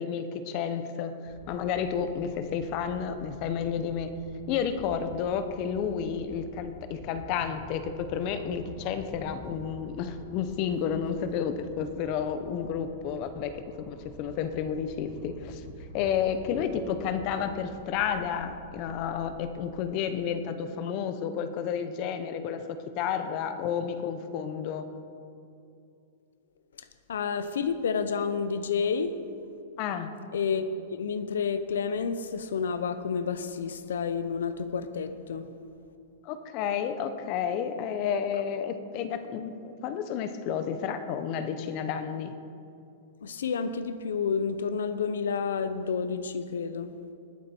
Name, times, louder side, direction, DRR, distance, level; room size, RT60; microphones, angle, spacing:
voice 1, 0.0-4.1 4.5-15.6 15.9-24.9 29.8-30.1 36.2-42.3, left 7 dB, 45° left, 10 dB, 0.9 m, -31 dB
sound 1, 1.3-19.7, equal, ahead, 1.7 m, -48 dB
voice 2, 26.8-29.1 30.3-35.5 43.2-46.9, left 6 dB, 90° left, 12 dB, 0.7 m, -30 dB
19.5 x 7.6 x 4.5 m, 2.6 s
hypercardioid pair, 140°, 0 cm